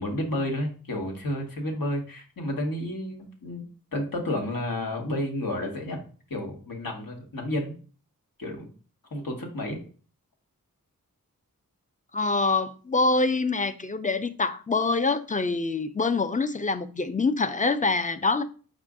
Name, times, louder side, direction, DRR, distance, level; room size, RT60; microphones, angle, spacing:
voice 1, 0.0-3.7 3.9-6.0 6.3-7.7 8.4-8.7 9.1-9.8, left 1 dB, 70° left, 1.3 m, -31 dB
voice 2, 12.1-18.4, left 3 dB, 25° left, 0.4 m, -25 dB
5.2 x 2.4 x 3.6 m
wide cardioid pair, 45°, 35 cm